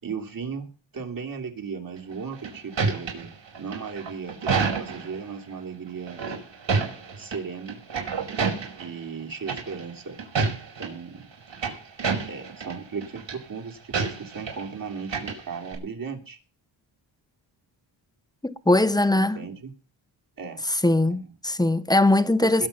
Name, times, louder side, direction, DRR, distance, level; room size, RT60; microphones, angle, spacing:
voice 1, 0.0-3.3 3.6-6.2 7.2-7.8 8.8-10.2 10.8-11.2 12.3-16.4 19.1-19.7 20.4-20.6 21.1-21.3 22.4-22.7, right 5 dB, 45° right, 3.3 m, -36 dB
sound 1, 2.1-5.2 6.1-7.4 7.7-8.9 9.5-9.9 10.2-10.9 11.3-12.7 13.0-13.3 13.9-14.7 15.0-15.8, right 5 dB, 65° right, 5.4 m, -28 dB
voice 2, 18.4-19.5 20.7-22.7, left 2 dB, 10° left, 1.0 m, -21 dB
21.0 x 7.5 x 5.6 m
cardioid pair, 95°, 48 cm